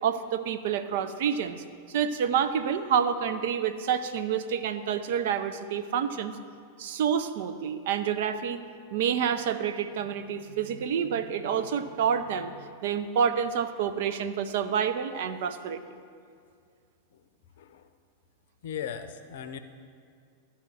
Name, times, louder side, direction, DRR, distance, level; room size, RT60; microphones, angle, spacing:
voice 1, 0.0-6.4 6.8-8.6 8.9-15.8, right 8 dB, 55° right, 10 dB, 0.5 m, -28 dB
voice 2, 17.6-17.9 18.6-19.6, left 8 dB, 55° left, 10 dB, 0.6 m, -37 dB
12.5 x 4.2 x 7.7 m, 2.3 s
figure-of-eight pair, 90°, 0 cm